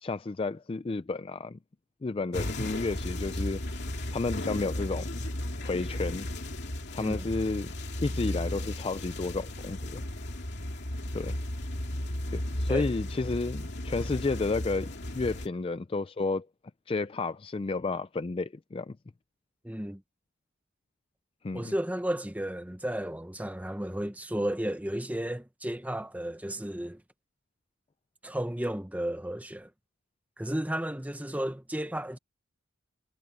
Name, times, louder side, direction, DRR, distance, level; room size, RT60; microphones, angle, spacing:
voice 1, 0.0-1.6 2.0-3.6 4.1-5.3 5.6-6.3 6.9-7.7 8.0-10.0 11.1-11.4 12.3-16.5 16.9-19.0 21.4-21.7, left 3 dB, 25° left, 0.3 m, -31 dB
sound 1, 2.3-15.5, left 1 dB, 50° left, 2.6 m, -35 dB
voice 2, 7.0-7.3 12.7-12.9 19.6-20.0 21.5-27.0 28.2-29.7 30.4-32.2, right 1 dB, 5° right, 1.0 m, -33 dB
head